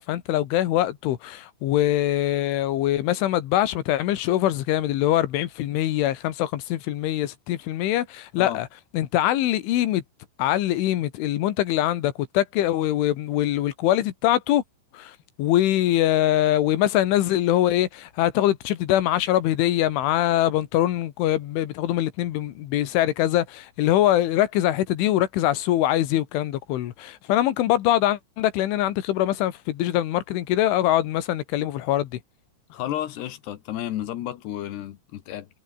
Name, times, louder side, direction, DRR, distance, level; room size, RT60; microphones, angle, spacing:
voice 1, 0.0-8.7 8.9-10.0 10.4-14.6 14.9-32.1, left 13 dB, 80° left, 4.0 m, -23 dB
voice 2, 32.7-35.5, left 12 dB, 65° left, 3.3 m, -32 dB
omnidirectional pair, 5.5 m